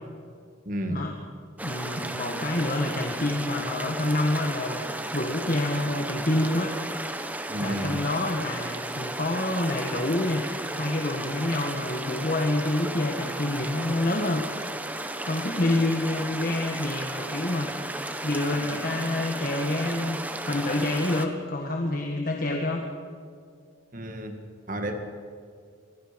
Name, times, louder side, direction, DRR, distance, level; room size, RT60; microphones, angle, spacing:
voice 1, 0.7-1.1 7.5-8.0 23.9-24.4 24.7-24.9, right 1 dB, 40° right, 5 dB, 1.9 m, -31 dB
voice 2, 1.6-4.8 5.1-6.8 7.6-10.4 10.7-14.5 15.3-17.7 18.2-20.2 20.5-22.9, left 1 dB, 45° left, 2 dB, 1.6 m, -27 dB
sound 1, 1.6-21.3, right 1 dB, 10° right, 1.0 m, -34 dB
26.5 x 21.0 x 5.3 m, 2.2 s
head